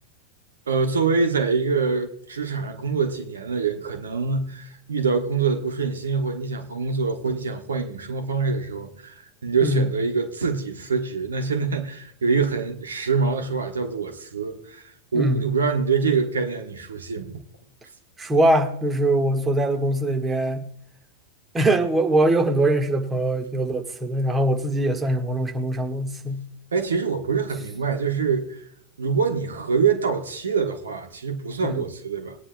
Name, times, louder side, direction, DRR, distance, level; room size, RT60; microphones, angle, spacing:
voice 1, 0.7-17.4 26.7-28.6 29.0-32.4, right 5 dB, 70° right, 1.2 m, -25 dB
voice 2, 18.2-20.6 21.5-26.4 31.6-31.8, right 1 dB, 15° right, 1.5 m, -22 dB
20.5 x 9.8 x 2.2 m
figure-of-eight pair, 90°, 0 cm